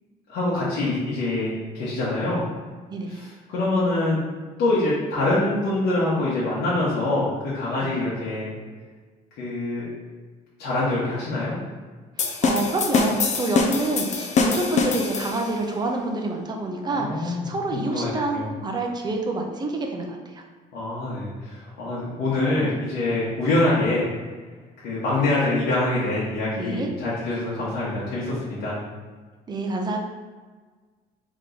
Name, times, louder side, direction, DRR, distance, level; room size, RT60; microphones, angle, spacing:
voice 1, 0.3-2.4 3.1-4.2 4.6-8.5 9.4-9.9 10.6-11.5 16.8-18.5 20.7-24.1 24.8-28.8, left 2 dB, 75° left, -9 dB, 1.2 m, -25 dB
voice 2, 2.9-3.2 7.8-8.0 12.2-20.4 26.6-26.9 27.6-27.7 29.5-30.0, right 2 dB, 25° right, 2 dB, 0.6 m, -27 dB
sound 1, 12.2-15.6, left 4 dB, 45° left, 0.5 m, -24 dB
3.7 x 3.0 x 3.8 m, 1.4 s
cardioid pair, 110°, 17 cm